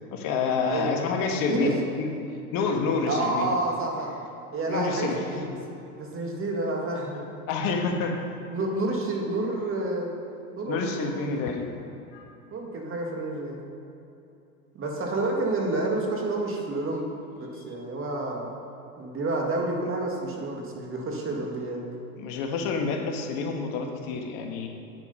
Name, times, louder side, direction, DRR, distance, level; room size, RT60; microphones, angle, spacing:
voice 1, 0.0-2.1 2.5-3.5 4.7-5.2 7.5-8.2 10.7-11.7 12.1-12.2 22.2-24.7, left 4 dB, 50° left, 3 dB, 1.5 m, -28 dB
voice 2, 1.4-1.7 2.9-4.1 4.5-7.3 8.5-10.1 10.6-11.4 12.5-13.6 14.7-17.1 17.4-18.5 19.0-21.8, right 2 dB, 30° right, 0 dB, 2.1 m, -29 dB
9.5 x 8.3 x 5.5 m, 2.8 s
hypercardioid pair, 100°, 44 cm